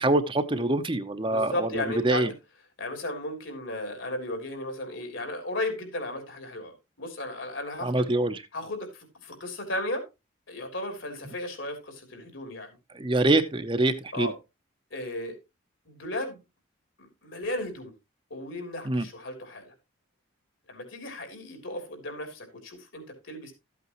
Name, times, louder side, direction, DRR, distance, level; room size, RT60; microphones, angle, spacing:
voice 1, 0.0-2.3 7.8-8.4 12.9-14.3 18.8-19.1, right 2 dB, 25° right, 0.7 m, -25 dB
voice 2, 1.2-2.3 2.8-8.1 8.5-10.1 10.5-12.8 14.1-14.3 14.9-15.4 15.8-16.4 17.0-17.9 18.3-19.7 20.7-23.5, left 1 dB, 70° left, 3.3 m, -35 dB
13.5 x 8.3 x 3.0 m
head